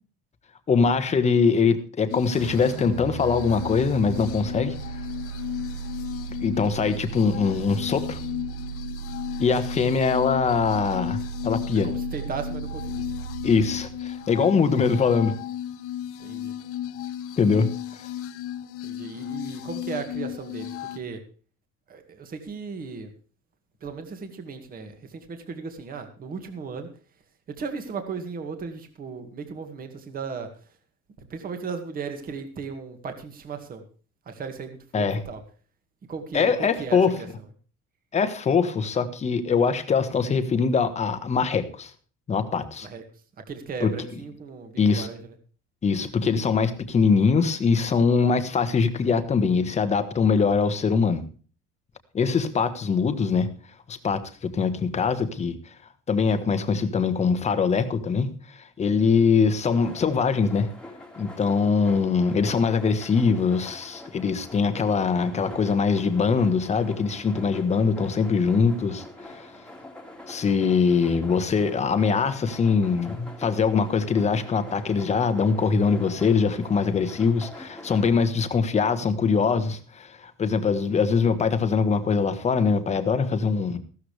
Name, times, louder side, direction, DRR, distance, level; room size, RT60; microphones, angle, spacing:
voice 1, 0.7-4.8 6.4-8.2 9.4-11.9 13.4-15.3 17.4-17.7 34.9-35.2 36.3-37.1 38.1-41.9 42.3-42.9 43.8-43.9 44.8-45.1 45.8-51.2 52.1-53.5 53.9-55.5 56.1-60.7 61.2-69.0 70.3-83.8, left 5 dB, 20° left, 9 dB, 1.4 m, -22 dB
sound 1, 2.1-21.0, left 11 dB, 50° left, 1.0 m, -35 dB
sound 2, 2.4-15.1, right 7 dB, 80° right, 0.9 m, -36 dB
voice 2, 11.8-13.1 16.2-16.5 18.8-21.2 21.9-23.1 23.8-26.9 27.5-30.8 31.2-33.8 34.3-35.4 36.1-37.3 42.8-45.4, right 5 dB, 30° right, 7 dB, 2.1 m, -36 dB
sound 3, 59.7-78.1, left 1 dB, 5° left, 2.2 m, -44 dB
15.5 x 13.0 x 3.4 m, 0.39 s
cardioid pair, 170°, 30 cm